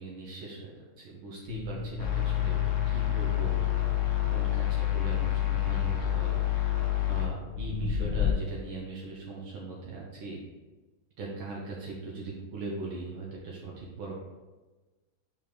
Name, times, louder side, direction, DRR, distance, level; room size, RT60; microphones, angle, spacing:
voice 1, 0.0-2.6 2.9-3.6 4.3-6.4 7.0-10.4 11.2-14.1, right 3 dB, 80° right, -3 dB, 1.8 m, -40 dB
sound 1, 1.5-8.3, left 6 dB, 80° left, 1.6 m, -36 dB
sound 2, 2.0-7.3, left 14 dB, 50° left, 1.0 m, -28 dB
5.2 x 4.7 x 4.7 m, 1.2 s
omnidirectional pair, 2.3 m